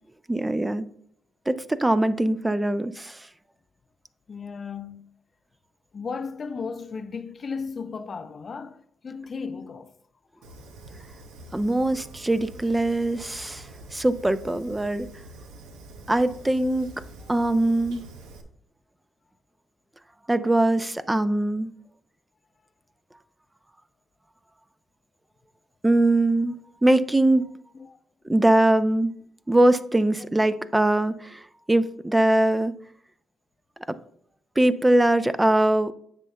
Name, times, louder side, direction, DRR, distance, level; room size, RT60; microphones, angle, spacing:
voice 1, 0.3-0.9 1.5-3.3 11.5-15.1 16.1-16.9 17.3-18.0 20.3-21.7 25.8-27.5 28.2-29.1 29.5-32.7 33.9-34.0 34.6-35.9, right 1 dB, 15° right, 0.5 m, -22 dB
voice 2, 4.3-5.1 5.9-10.0 10.3-10.5 10.8-11.2 17.2-17.4 27.7-28.0 35.2-35.3, left 5 dB, 45° left, 0.5 m, -36 dB
Fire, 10.4-18.4, right 2 dB, 90° right, 0.8 m, -45 dB
9.7 x 6.7 x 2.3 m
supercardioid pair, 65°, 0 cm